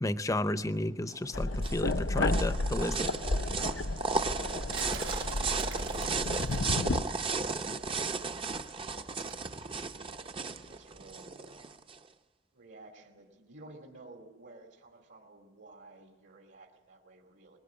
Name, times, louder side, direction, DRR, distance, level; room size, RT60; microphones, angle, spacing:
voice 1, 0.0-3.1, left 1 dB, 15° left, 13 dB, 0.7 m, -32 dB
sound 1, 1.1-12.0, right 4 dB, 30° right, 0.7 m, -35 dB
sound 2, 1.3-7.0, left 2 dB, 80° left, 0.7 m, -32 dB
voice 2, 4.5-7.1 7.6-8.3 9.8-11.8 12.5-17.6, right 2 dB, 65° right, 3 dB, 2.8 m, -53 dB
sound 3, 4.7-6.8 9.3-9.5, right 8 dB, 80° right, 2.6 m, -46 dB
21.5 x 21.0 x 8.7 m, 1.2 s
head